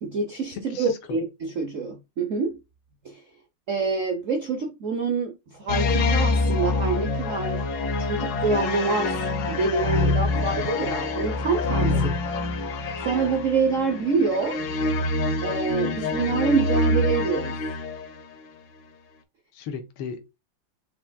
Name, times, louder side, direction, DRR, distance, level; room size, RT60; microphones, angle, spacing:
voice 1, 0.0-2.6 3.0-3.2 3.7-7.6 8.0-9.2 9.5-11.9 13.0-14.6 15.4-17.6, right 4 dB, 90° right, 0.6 m, -26 dB
voice 2, 0.5-1.2 11.9-12.4 19.5-20.4, left 7 dB, 80° left, 1.7 m, -36 dB
sound 1, 5.7-18.2, left 2 dB, 60° left, 1.1 m, -25 dB
5.9 x 3.5 x 2.2 m
omnidirectional pair, 2.3 m